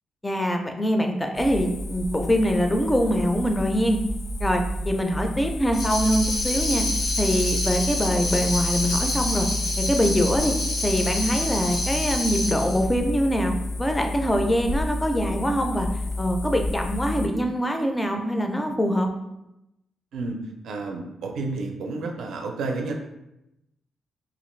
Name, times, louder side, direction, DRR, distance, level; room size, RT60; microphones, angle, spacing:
voice 1, 0.2-4.0 4.4-6.8 7.2-9.5 9.8-10.5 10.8-15.9 16.2-19.1, equal, 10° left, 4 dB, 0.3 m, -24 dB
sound 1, 1.3-17.3, left 2 dB, 85° left, 0.3 m, -30 dB
Tambourine, 5.7-12.8, left 2 dB, 70° left, 0.7 m, -28 dB
voice 2, 20.6-22.9, right 3 dB, 75° right, 2 dB, 0.4 m, -31 dB
2.9 x 2.4 x 3.1 m, 0.88 s
cardioid pair, 135°, 0 cm